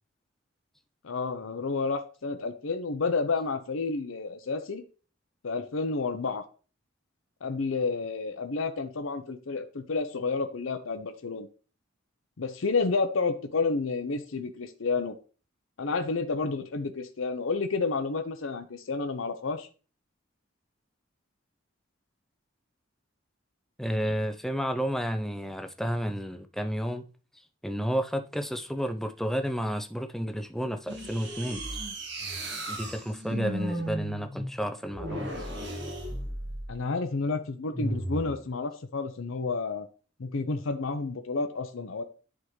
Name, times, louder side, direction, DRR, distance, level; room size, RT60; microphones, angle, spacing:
voice 1, 1.0-4.8 5.4-6.4 7.4-11.5 12.4-15.1 15.8-19.7 33.3-33.4 36.7-39.9 40.2-42.0, left 4 dB, 85° left, 0.7 m, -30 dB
voice 2, 23.8-27.0 27.6-31.8 32.7-35.5, equal, ahead, 0.5 m, -31 dB
sound 1, 30.9-36.8 37.7-38.4, right 1 dB, 60° right, 1.8 m, -35 dB
10.0 x 3.6 x 3.1 m
head